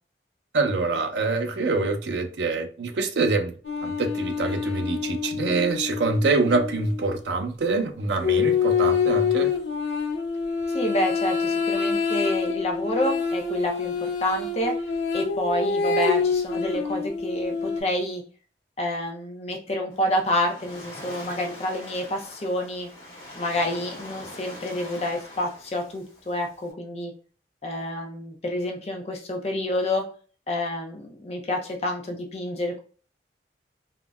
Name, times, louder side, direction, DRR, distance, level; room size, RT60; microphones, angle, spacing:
voice 1, 0.5-3.5 3.8-9.5, right 3 dB, 75° right, 0.5 m, -25 dB
sound 1, 3.6-7.2 8.2-17.8, left 5 dB, 90° left, 0.7 m, -26 dB
voice 2, 10.7-14.7 15.1-18.2 18.8-22.9 23.4-27.1 27.6-30.0 30.5-32.8, left 1 dB, 35° left, 0.5 m, -28 dB
Waves surf, 19.9-26.7, left 1 dB, 50° left, 1.2 m, -43 dB
3.7 x 2.1 x 2.2 m
head